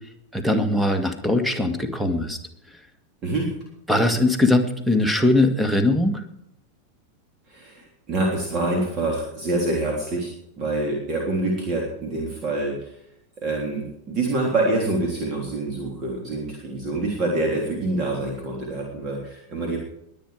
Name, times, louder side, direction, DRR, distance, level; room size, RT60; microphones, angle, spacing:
voice 1, 0.3-2.4 3.9-6.2, left 1 dB, 5° right, 7 dB, 1.9 m, -20 dB
voice 2, 7.5-12.9 13.4-19.8, right 2 dB, 30° right, -1 dB, 3.3 m, -26 dB
21.5 x 9.0 x 4.9 m, 0.79 s
figure-of-eight pair, 90°, 0 cm